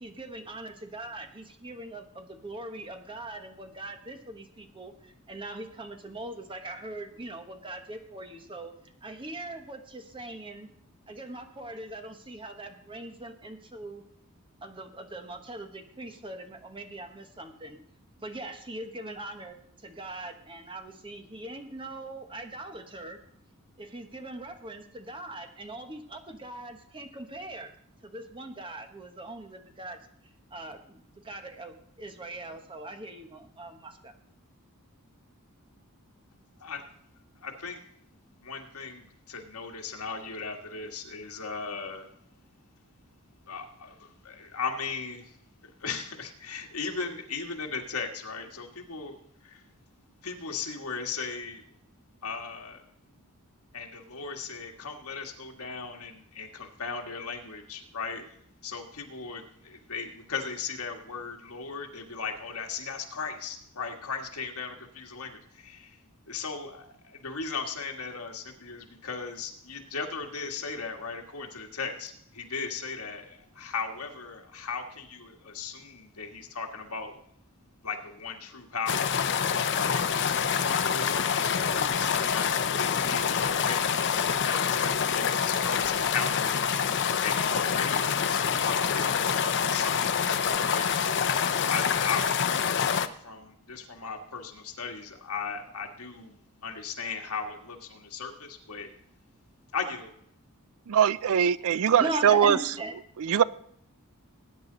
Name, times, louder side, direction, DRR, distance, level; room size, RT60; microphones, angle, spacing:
voice 1, 0.0-8.7 9.0-10.7 11.1-14.0 14.6-17.8 18.2-23.2 23.8-27.7 28.0-30.0 30.5-34.1 101.6-102.9, right 2 dB, 25° right, 6 dB, 1.3 m, -40 dB
voice 2, 37.4-37.8 38.4-42.1 43.5-45.4 45.8-49.6 50.2-51.6 52.2-52.8 53.7-58.3 58.6-66.0 66.3-77.2 77.8-79.1 79.7-80.1 80.4-83.9 84.2-86.6 86.8-90.2 90.6-90.9 91.6-98.9 99.7-100.1, left 5 dB, 75° left, 3 dB, 1.8 m, -37 dB
sound 1, 78.9-93.1, left 7 dB, 55° left, 0.7 m, -26 dB
voice 3, 100.9-102.6 103.2-103.4, right 8 dB, 65° right, 18 dB, 0.4 m, -21 dB
19.5 x 9.5 x 4.0 m, 0.70 s
head